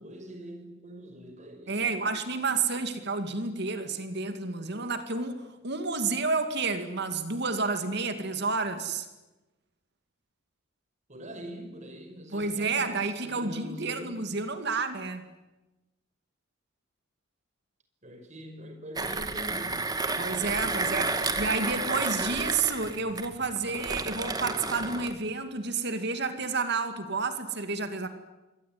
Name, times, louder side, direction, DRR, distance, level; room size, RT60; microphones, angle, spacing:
voice 1, 0.0-2.0 11.1-14.2 18.0-19.9, equal, 35° right, 5 dB, 5.9 m, -43 dB
voice 2, 1.7-9.1 12.3-15.3 20.2-28.1, right 4 dB, 55° right, 9 dB, 2.4 m, -30 dB
Mechanisms, 19.0-25.2, right 3 dB, 20° right, 2.0 m, -31 dB
26.5 x 23.0 x 9.6 m, 1.1 s
head